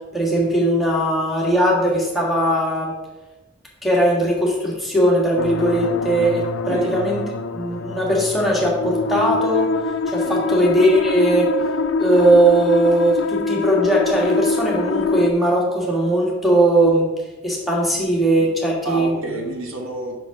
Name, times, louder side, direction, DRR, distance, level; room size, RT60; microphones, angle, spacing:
voice 1, 0.1-2.9 3.8-7.2 7.5-9.7 10.1-11.5 12.0-17.1 17.4-19.2, right 1 dB, ahead, -4 dB, 1.6 m, -19 dB
sound 1, 5.4-15.3, left 3 dB, 65° left, 0.5 m, -24 dB
voice 2, 18.8-20.2, right 1 dB, 75° right, 2 dB, 1.1 m, -28 dB
6.0 x 5.4 x 4.8 m, 1.1 s
head